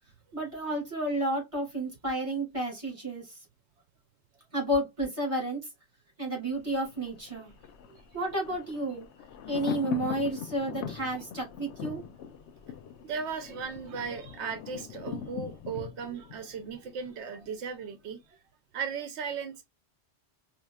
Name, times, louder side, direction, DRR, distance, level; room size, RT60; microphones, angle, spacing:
voice 1, 0.3-3.4 4.5-5.6 6.2-7.5 8.1-9.1 9.5-12.0, right 1 dB, 30° right, 2.2 m, -31 dB
Thunder, 6.6-17.5 17.8-17.9, left 8 dB, 90° left, 0.9 m, -41 dB
voice 2, 13.0-18.4 18.7-19.6, right 6 dB, 85° right, 0.9 m, -37 dB
3.9 x 2.8 x 2.2 m
omnidirectional pair, 1.1 m